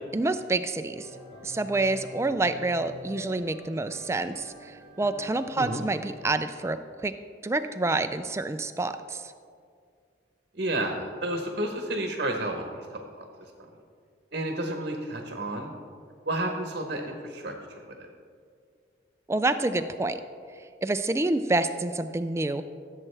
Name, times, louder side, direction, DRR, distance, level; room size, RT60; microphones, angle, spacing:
voice 1, 0.1-1.1 1.4-7.1 7.4-9.3 19.3-20.2 20.8-22.6, right 2 dB, 15° right, 10 dB, 0.3 m, -28 dB
sound 1, 0.9-6.2, left 1 dB, 90° left, 2.8 m, -46 dB
voice 2, 10.5-13.0 14.3-15.7 16.3-18.1, right 1 dB, 50° right, 3 dB, 0.9 m, -31 dB
15.5 x 7.5 x 3.3 m, 2.2 s
head